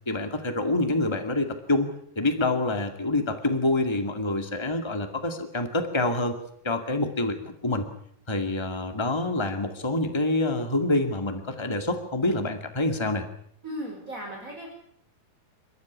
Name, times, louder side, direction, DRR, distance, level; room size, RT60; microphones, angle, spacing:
voice 1, 0.0-1.9 2.1-6.4 6.6-7.9 8.3-13.2, left 2 dB, 20° left, 6 dB, 0.8 m, -26 dB
voice 2, 13.6-14.7, equal, 20° right, 1 dB, 5.1 m, -36 dB
29.5 x 14.0 x 9.7 m, 0.68 s
omnidirectional pair, 4.6 m